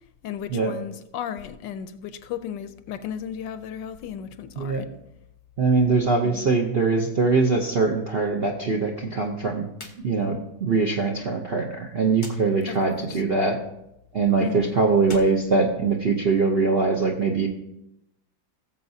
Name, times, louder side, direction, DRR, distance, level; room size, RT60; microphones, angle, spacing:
voice 1, 0.2-4.9 6.2-6.5 12.6-13.2 14.4-14.8, left 9 dB, 75° left, 1.2 m, -35 dB
voice 2, 5.6-9.7 10.0-13.6 14.1-17.5, right 4 dB, 55° right, 0.6 m, -22 dB
sound 1, 9.7-10.0 10.3-10.4 12.1-12.4 15.0-16.3, left 3 dB, 35° left, 0.9 m, -43 dB
18.0 x 7.3 x 2.7 m
omnidirectional pair, 2.1 m